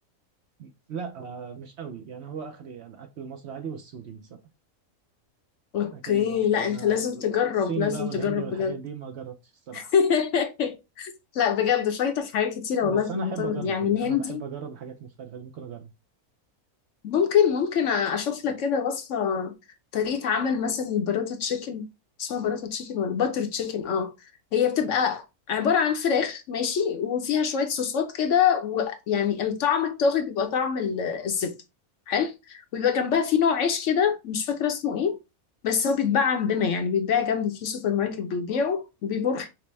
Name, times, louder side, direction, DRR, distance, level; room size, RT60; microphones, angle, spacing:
voice 1, 0.6-4.4 5.8-7.2 7.6-9.9 12.8-15.9, right 7 dB, 60° right, 0.8 m, -37 dB
voice 2, 5.7-8.7 9.7-14.4 17.0-19.5 19.9-21.9 22.2-24.1 24.5-31.5 32.1-35.2 35.6-39.5, left 7 dB, 65° left, 0.9 m, -25 dB
5.9 x 2.1 x 3.1 m
omnidirectional pair, 1.5 m